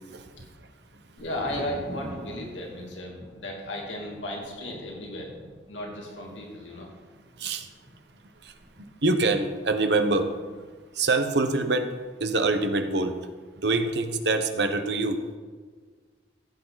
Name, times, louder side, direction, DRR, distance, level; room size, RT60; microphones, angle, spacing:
voice 1, 1.2-5.3 5.7-6.9, left 1 dB, 85° left, -1 dB, 2.6 m, -35 dB
Thunder, 1.2-10.8 11.1-11.8, equal, 40° right, 3.4 m, -47 dB
voice 2, 9.0-10.3 11.0-11.9 12.2-13.1 13.6-15.2, right 3 dB, 65° right, 7 dB, 1.1 m, -24 dB
15.5 x 8.6 x 4.1 m, 1.5 s
head